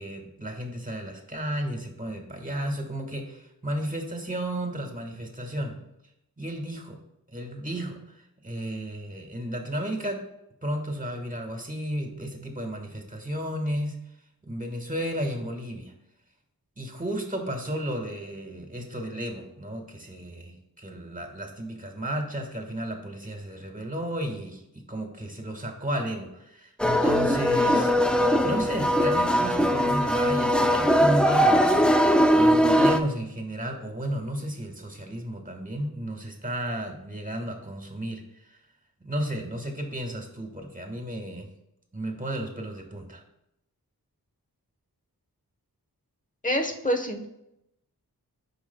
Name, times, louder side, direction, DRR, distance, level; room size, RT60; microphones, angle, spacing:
voice 1, 0.0-5.8 6.4-7.0 7.3-10.3 10.6-14.0 14.4-15.9 16.8-38.6 39.0-41.5 41.9-43.2, equal, 20° right, 3 dB, 1.6 m, -33 dB
sound 1, 26.8-33.0, equal, 5° left, 0.5 m, -21 dB
voice 2, 46.4-47.2, equal, 20° left, 4 dB, 1.1 m, -26 dB
12.0 x 5.0 x 2.3 m, 0.83 s
cardioid pair, 40°, 38 cm